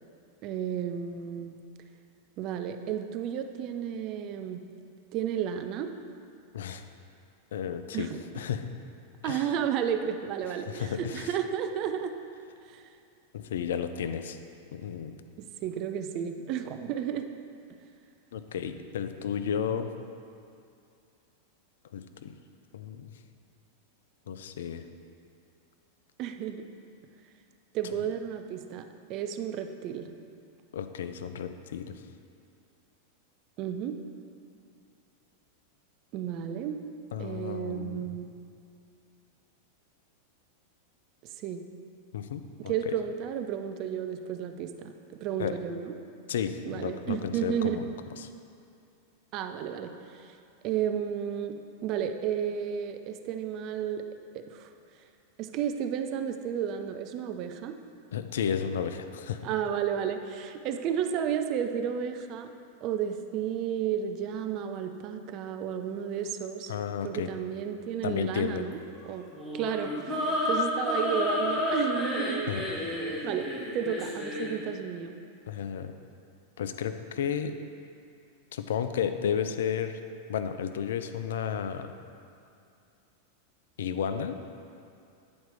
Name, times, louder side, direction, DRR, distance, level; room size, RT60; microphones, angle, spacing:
voice 1, 0.4-1.6 2.4-4.6 5.1-5.9 7.9-8.2 9.2-12.1 12.7-12.8 15.4-17.3 26.2-26.6 27.7-30.1 33.6-34.0 36.1-36.8 37.2-38.3 41.2-41.6 42.6-44.9 45.2-46.0 46.7-47.8 49.3-50.3 50.6-54.0 54.3-54.7 55.4-57.7 59.4-62.5 62.8-66.7 67.0-69.2 69.5-72.5 73.2-73.5 73.7-75.2, right 8 dB, 40° right, 7 dB, 0.4 m, -32 dB
voice 2, 7.5-8.7 9.2-9.5 10.6-11.3 13.3-14.4 14.7-15.2 18.3-19.9 21.9-22.4 22.7-23.1 24.3-24.8 30.7-32.0 37.1-38.1 42.1-42.9 45.4-45.5 46.3-47.8 48.2-48.3 58.1-59.5 66.7-67.3 68.0-68.7 72.5-72.6 75.5-75.9 76.6-77.6 78.5-80.0 80.3-81.9 83.8-84.4, left 8 dB, 60° left, 9 dB, 0.3 m, -33 dB
sound 1, 69.3-74.6, left 1 dB, 5° left, 1.3 m, -30 dB
8.7 x 4.3 x 3.6 m, 2.5 s
figure-of-eight pair, 90°, 0 cm